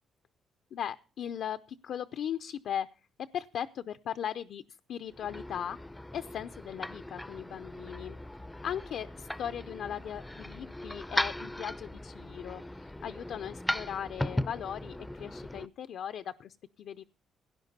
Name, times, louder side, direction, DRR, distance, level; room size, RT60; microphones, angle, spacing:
voice 1, 0.7-3.0 3.3-5.8 6.1-8.2 8.6-17.0, left 9 dB, 70° left, 10 dB, 0.5 m, -38 dB
sound 1, 5.1-15.7, left 1 dB, 10° left, 0.5 m, -38 dB
17.0 x 10.5 x 4.0 m, 0.35 s
cardioid pair, 90°, 0 cm